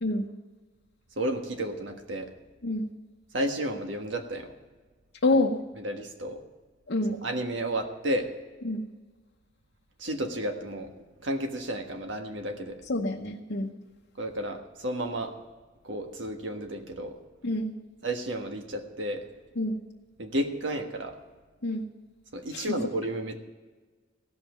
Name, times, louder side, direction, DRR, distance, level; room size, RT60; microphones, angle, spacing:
voice 1, 1.2-2.3 3.3-4.5 5.3-5.4 5.8-6.4 7.1-8.3 10.0-10.9 11.2-12.8 14.2-15.3 15.8-17.2 18.0-19.3 20.2-21.1 22.3-23.4, right 1 dB, 75° right, 5 dB, 1.5 m, -32 dB
voice 2, 5.2-5.6 6.9-7.2 8.6-8.9 12.9-13.7 17.4-17.7 19.6-19.8 21.6-21.9 22.5-22.8, left 2 dB, 65° left, -1 dB, 0.9 m, -27 dB
16.5 x 5.6 x 9.2 m, 1.3 s
head